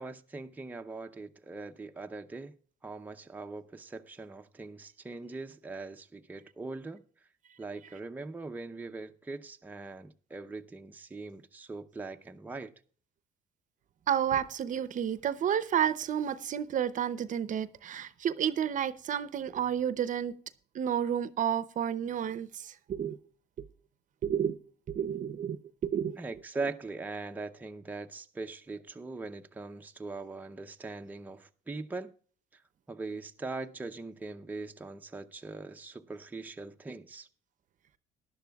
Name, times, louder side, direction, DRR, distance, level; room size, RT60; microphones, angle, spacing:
voice 1, 0.0-2.6 2.8-7.0 7.6-12.7 26.2-32.1 32.5-32.6 32.9-37.3, right 3 dB, 10° right, 0.6 m, -41 dB
voice 2, 14.1-20.4 20.7-23.2 24.2-24.6 24.9-26.2, right 9 dB, 50° right, 0.7 m, -31 dB
18.5 x 11.5 x 2.3 m
cardioid pair, 110°, 17 cm